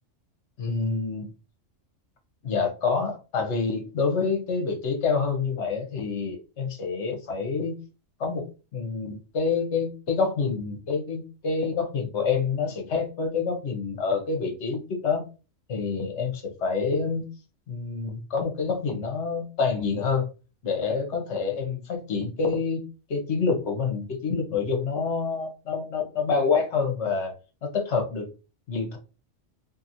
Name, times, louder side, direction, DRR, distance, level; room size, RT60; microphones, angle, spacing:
voice 1, 0.6-1.3 2.4-7.8 8.2-8.5 8.7-15.3 15.7-17.3 17.7-20.3 20.6-22.8 23.1-27.3 27.6-28.3 28.7-29.0, left 5 dB, 65° left, 3 dB, 1.1 m, -27 dB
2.8 x 2.6 x 2.6 m, 0.32 s
omnidirectional pair, 1.3 m